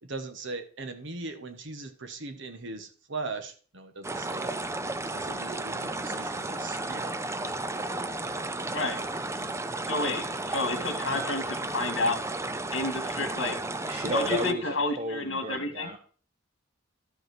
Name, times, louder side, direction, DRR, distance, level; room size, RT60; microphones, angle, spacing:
voice 1, 0.0-4.6 5.1-7.2, right 3 dB, 65° right, 7 dB, 1.3 m, -39 dB
sound 1, 4.0-14.5, right 2 dB, 15° right, 0.5 m, -33 dB
voice 2, 9.8-12.2 12.7-13.6 14.1-15.9, left 2 dB, 65° left, 8 dB, 1.9 m, -30 dB
voice 3, 13.9-16.0, equal, 30° right, 5 dB, 1.1 m, -33 dB
12.5 x 5.5 x 6.1 m, 0.43 s
head